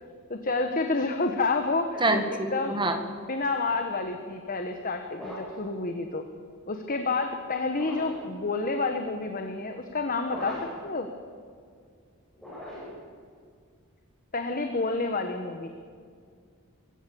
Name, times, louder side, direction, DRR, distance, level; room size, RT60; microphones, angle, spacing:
voice 1, 0.3-2.8 3.3-6.2 6.7-11.1 14.3-15.7, left 3 dB, 40° left, 6 dB, 1.3 m, -29 dB
voice 2, 2.0-3.0, right 2 dB, 20° right, 6 dB, 1.9 m, -26 dB
sound 1, 5.1-5.7 7.7-8.3 10.2-10.9 12.3-13.1, left 1 dB, ahead, 7.8 m, -40 dB
23.5 x 16.5 x 7.1 m, 2.1 s
head